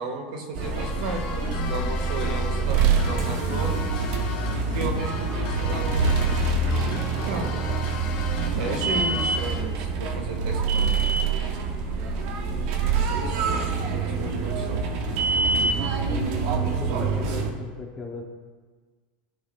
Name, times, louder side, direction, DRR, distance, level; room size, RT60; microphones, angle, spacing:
voice 1, 0.0-3.7 4.5-6.1 7.2-7.5 8.5-10.9 12.9-13.2 13.5-14.8, right 2 dB, 65° right, 2 dB, 1.5 m, -34 dB
sound 1, 0.5-17.5, right 4 dB, 50° right, 0.8 m, -25 dB
sound 2, 0.6-9.6, left 5 dB, 85° left, 2.2 m, -37 dB
voice 2, 16.1-18.2, left 4 dB, 15° left, 1 dB, 0.6 m, -37 dB
13.5 x 5.4 x 2.2 m, 1.5 s
supercardioid pair, 175°, 5 cm